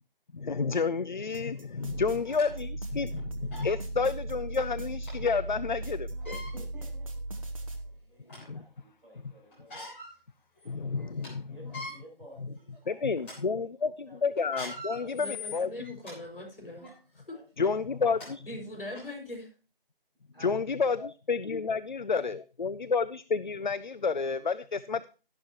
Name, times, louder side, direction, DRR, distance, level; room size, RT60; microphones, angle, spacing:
voice 1, 0.3-6.4 8.5-8.6 10.7-11.5 12.9-13.9 14.2-15.7 17.6-18.4 20.4-25.1, left 5 dB, 55° left, 16 dB, 0.4 m, -30 dB
sound 1, 1.3-1.4 2.1-2.5 3.1-3.2 3.5-3.7 5.1-5.2 6.1-6.5 7.3-7.4 7.9-8.6 9.5-10.1 10.6-10.7 11.0-11.3 11.6-11.9 12.6-12.8 13.2-13.3 14.4-16.1 16.8-17.0 17.8-17.9 18.2-18.3 18.9-19.0, left 2 dB, 15° left, 3.5 m, -42 dB
sound 2, 1.3-5.1 5.8-7.8, right 2 dB, 35° right, 1.2 m, -47 dB
sound 3, 1.8-8.0, right 2 dB, 70° right, 2.2 m, -38 dB
voice 2, 6.3-7.1 8.0-10.2 10.5-10.8 11.4-14.3 14.9-15.5 17.3-18.3 18.6-19.1 20.3-20.9, right 1 dB, 5° right, -13 dB, 5.8 m, -55 dB
voice 3, 15.1-16.9 17.1-17.4 18.5-19.5, left 1 dB, 70° left, 1 dB, 6.0 m, -41 dB
12.0 x 11.5 x 3.0 m, 0.35 s
figure-of-eight pair, 165°, 29 cm